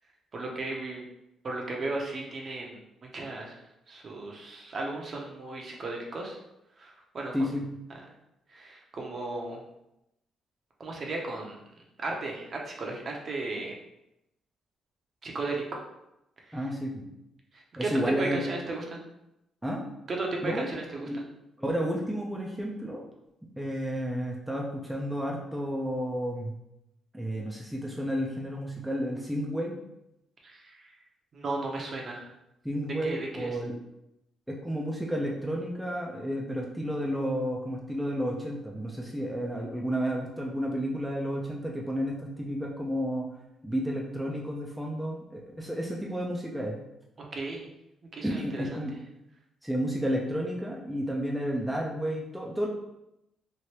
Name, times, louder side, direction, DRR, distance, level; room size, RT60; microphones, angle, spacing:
voice 1, 0.3-1.0 1.4-2.8 3.1-3.6 3.9-6.4 6.8-7.3 8.5-9.6 10.8-11.6 12.0-13.7 15.2-15.8 16.5-16.6 17.8-17.9 18.2-19.0 20.1-21.1 30.4-30.9 31.3-32.3 33.0-33.5 47.3-47.7 48.1-48.6, right 2 dB, 45° right, 0 dB, 0.7 m, -35 dB
voice 2, 7.3-7.7 16.5-17.1 17.8-18.4 19.6-19.8 20.4-20.7 21.0-21.2 21.6-23.0 23.6-26.6 27.1-29.7 32.6-33.7 34.5-43.3 43.6-46.8 48.2-48.9 49.6-52.7, equal, 5° right, -2 dB, 0.5 m, -31 dB
3.2 x 2.5 x 2.9 m, 0.86 s
cardioid pair, 90°, 0 cm